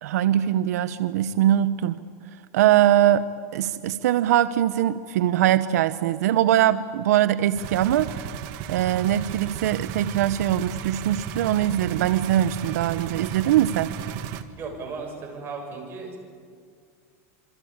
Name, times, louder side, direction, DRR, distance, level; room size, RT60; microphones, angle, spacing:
voice 1, 0.0-2.0 2.5-8.3 8.7-13.9, right 12 dB, 85° right, 13 dB, 0.8 m, -22 dB
sound 1, 7.6-14.4, right 8 dB, 55° right, 1.7 m, -34 dB
voice 2, 14.6-16.2, right 4 dB, 30° right, 2 dB, 7.2 m, -35 dB
27.0 x 25.0 x 8.8 m, 2.1 s
supercardioid pair, 140°, 8 cm